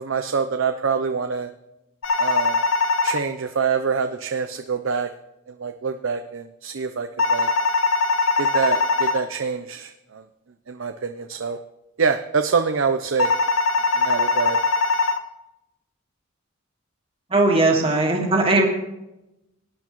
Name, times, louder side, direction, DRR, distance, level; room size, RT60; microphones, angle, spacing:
voice 1, 0.0-1.5 2.2-2.6 3.0-5.1 5.5-7.5 8.4-10.2 10.7-11.6 12.0-13.3 13.9-14.6, right 5 dB, 70° right, 7 dB, 0.6 m, -25 dB
sound 1, 2.0-3.2 7.2-9.2 13.2-15.2, left 3 dB, 80° left, 0.8 m, -21 dB
voice 2, 17.3-18.7, right 2 dB, 30° right, 0 dB, 1.7 m, -18 dB
18.5 x 10.5 x 3.1 m, 0.91 s
head